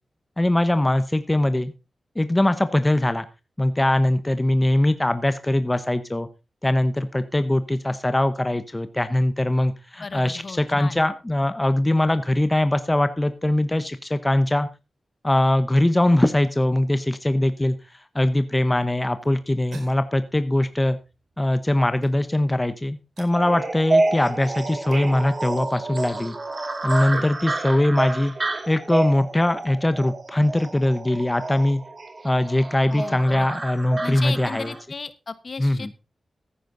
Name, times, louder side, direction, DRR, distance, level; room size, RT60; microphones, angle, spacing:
voice 1, 0.4-1.7 2.2-3.3 3.6-6.3 6.6-14.7 15.2-21.0 21.4-26.4 26.8-28.3 28.7-31.8 32.2-34.7 35.6-35.9, left 1 dB, 15° left, 11 dB, 0.8 m, -21 dB
voice 2, 10.0-11.0 32.9-33.5 34.0-35.9, left 4 dB, 45° left, 14 dB, 1.2 m, -35 dB
sound 1, 19.1-30.2, right 3 dB, 80° right, 5.0 m, -50 dB
sound 2, 23.3-34.8, right 2 dB, 35° right, 2.4 m, -29 dB
15.0 x 10.0 x 3.8 m, 0.28 s
wide cardioid pair, 140°, 0 cm